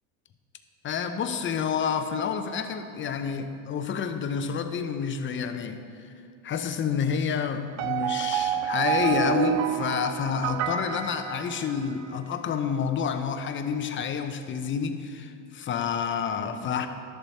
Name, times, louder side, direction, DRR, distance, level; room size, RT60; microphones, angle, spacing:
voice 1, 0.8-5.8 6.4-16.9, left 7 dB, 30° left, 8 dB, 0.7 m, -29 dB
sound 1, 7.8-12.1, right 11 dB, 50° right, 0.5 m, -28 dB
12.5 x 7.0 x 4.2 m, 2.5 s
supercardioid pair, 110°, 38 cm